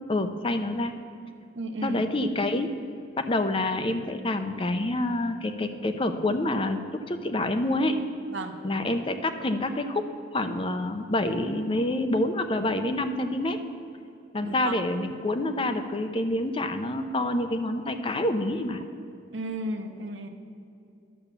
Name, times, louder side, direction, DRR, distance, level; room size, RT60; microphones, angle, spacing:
voice 1, 0.1-1.0 1.8-2.7 3.2-8.0 8.6-10.0 10.3-13.6 14.3-18.8, left 1 dB, 30° left, 7 dB, 0.6 m, -27 dB
voice 2, 1.5-2.0 8.3-8.6 14.4-14.7 19.3-20.3, right 1 dB, 80° right, 4 dB, 1.0 m, -33 dB
10.5 x 7.0 x 6.9 m, 2.6 s
head